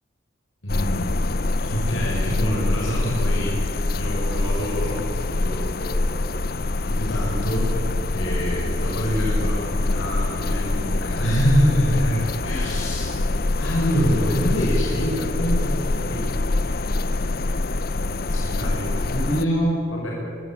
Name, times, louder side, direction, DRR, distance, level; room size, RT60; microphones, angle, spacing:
voice 1, 0.6-1.1 1.6-3.6 3.9-6.1 6.9-7.7 8.1-13.1 13.6-16.2 17.3-17.4 17.9-20.1, equal, 85° left, -4 dB, 5.9 m, -25 dB
sound 1, 0.7-19.4, left 2 dB, 50° left, 0.7 m, -25 dB
25.0 x 15.0 x 9.2 m, 2.7 s
head